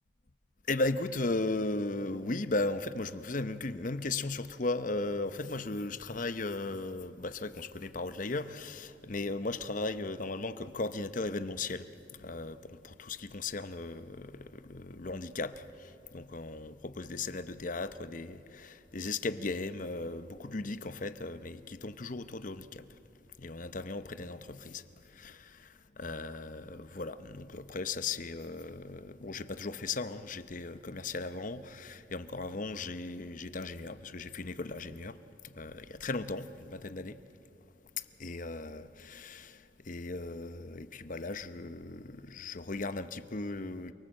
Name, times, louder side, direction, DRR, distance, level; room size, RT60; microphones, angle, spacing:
voice 1, 0.7-11.9 12.1-22.9 23.4-37.2 38.2-43.9, left 3 dB, 45° left, 0.8 m, -37 dB
29.0 x 18.5 x 7.7 m
head